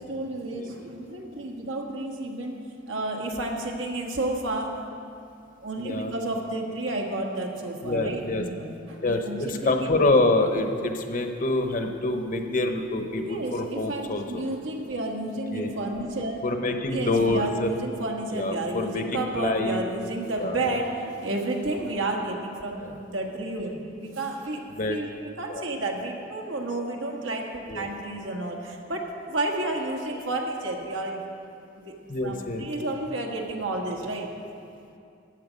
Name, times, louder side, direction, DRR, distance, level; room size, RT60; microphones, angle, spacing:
voice 1, 0.0-2.6 2.9-4.8 5.6-10.0 13.2-16.5 16.8-25.1 25.4-31.2 31.7-31.9 32.2-34.3, right 2 dB, 80° right, 0 dB, 1.6 m, -31 dB
voice 2, 5.8-6.1 7.8-8.4 9.0-14.4 15.5-15.7 16.4-17.7 18.3-19.8 20.4-20.8 22.8-22.9 24.7-25.0 25.5-25.6 27.7-27.9 32.1-32.7, left 2 dB, 45° left, 5 dB, 0.9 m, -26 dB
14.0 x 8.9 x 5.2 m, 2.5 s
head